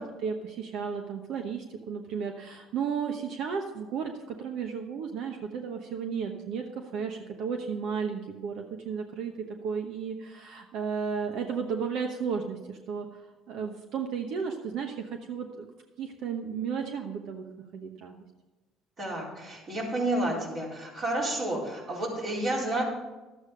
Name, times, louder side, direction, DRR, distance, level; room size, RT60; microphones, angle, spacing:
voice 1, 0.2-15.7 16.0-17.4 17.7-18.1, right 6 dB, 70° right, 4 dB, 1.0 m, -34 dB
voice 2, 19.0-22.8, right 1 dB, 50° right, -4 dB, 4.3 m, -30 dB
12.0 x 8.1 x 5.0 m, 1.1 s
supercardioid pair, 75°, 0 cm